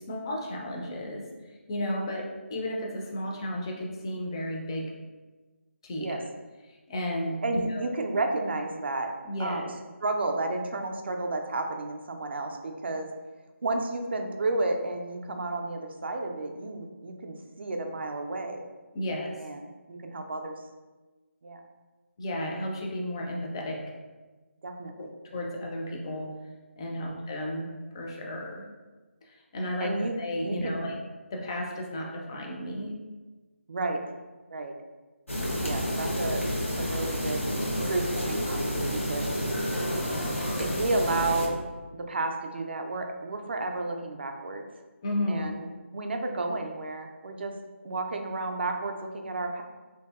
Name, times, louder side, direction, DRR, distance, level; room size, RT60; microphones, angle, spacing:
voice 1, 0.0-4.9 5.8-6.2 6.7-7.9 9.2-9.7 18.9-19.4 22.2-23.8 25.0-26.3 26.8-28.6 29.2-31.0 31.3-33.0 45.0-45.5, left 1 dB, 20° left, 0 dB, 0.3 m, -33 dB
voice 2, 7.4-9.1 9.4-9.7 10.0-13.1 13.6-18.6 19.4-19.6 19.9-20.6 21.4-21.6 24.6-25.1 27.0-27.2 29.8-30.1 30.4-30.8 33.7-34.0 34.5-34.7 35.6-37.4 37.8-39.3 40.6-41.6 41.9-44.6 45.3-45.7 45.9-47.5 47.8-49.6, right 2 dB, 55° right, 4 dB, 0.4 m, -32 dB
sound 1, 35.3-41.5, equal, 75° left, 0.8 m, -30 dB
2.8 x 2.6 x 2.2 m, 1.2 s
figure-of-eight pair, 160°, 7 cm